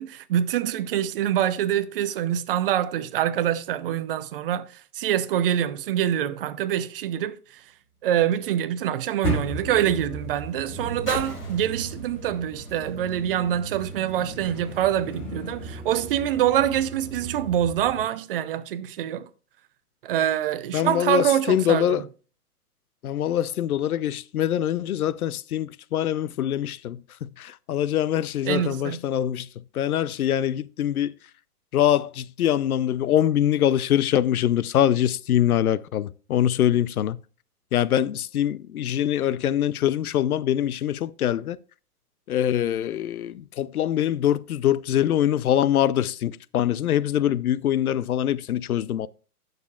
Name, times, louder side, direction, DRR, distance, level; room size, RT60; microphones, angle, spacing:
voice 1, 0.0-7.6 8.0-19.3 20.0-21.9 28.4-29.0, right 11 dB, 35° right, 0.7 m, -25 dB
sound 1, 7.5-14.0 14.9-15.0, left 3 dB, 90° left, 4.1 m, -44 dB
sound 2, 9.2-18.0, right 1 dB, 5° left, 0.4 m, -35 dB
voice 2, 20.7-22.1 23.0-29.5 29.7-31.2 31.7-37.2 37.7-41.6 42.3-49.1, left 11 dB, 70° left, 0.7 m, -24 dB
17.0 x 6.8 x 2.4 m
hypercardioid pair, 135°, 46 cm